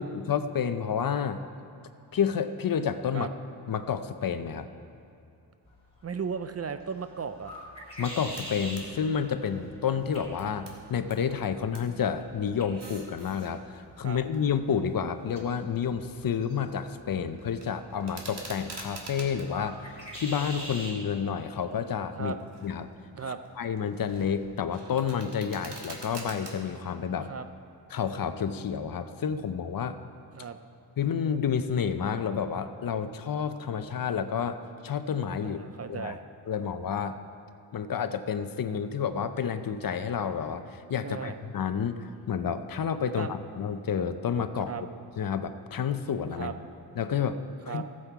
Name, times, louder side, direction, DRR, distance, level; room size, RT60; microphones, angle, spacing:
voice 1, 0.0-1.4 2.1-3.3 3.7-4.7 8.0-22.3 22.6-22.9 23.6-27.3 27.9-30.0 31.0-35.6 35.9-36.1 36.5-37.2 37.7-43.3 43.5-44.7 45.2-46.5 47.0-47.4 47.6-47.8, left 7 dB, 55° left, 10 dB, 0.6 m, -30 dB
sound 1, 5.6-21.0, equal, 15° left, 3.0 m, -46 dB
voice 2, 6.0-7.5 14.0-14.2 22.2-22.4 23.1-23.4 27.2-27.5 30.3-30.6 35.4-36.2 41.0-41.4 43.2-43.3 44.7-44.8 46.3-46.5 47.7-47.8, right 6 dB, 40° right, 10 dB, 0.4 m, -35 dB
sound 2, 8.4-8.9 9.2-11.2 11.5-11.9 12.6-13.5 14.2-16.3 16.6-17.0 17.3-19.5 20.0-20.9 21.4-21.7 22.3-22.8 23.2-26.5, right 3 dB, 70° right, 1.7 m, -47 dB
15.0 x 7.7 x 4.6 m, 2.7 s
wide cardioid pair, 135°, 42 cm